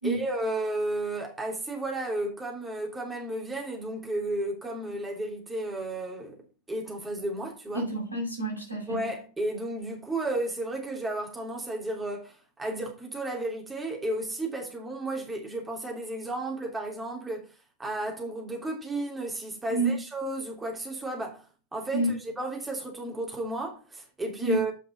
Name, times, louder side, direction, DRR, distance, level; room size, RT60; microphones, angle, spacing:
voice 1, 0.0-6.4 6.7-7.8 8.9-17.5 17.8-21.5 21.7-24.7, right 2 dB, 10° right, 3.2 m, -33 dB
voice 2, 7.7-9.0 19.7-19.9 21.9-22.1 24.4-24.6, right 1 dB, 85° right, 5.7 m, -28 dB
9.4 x 5.9 x 5.3 m
figure-of-eight pair, 90°, 0 cm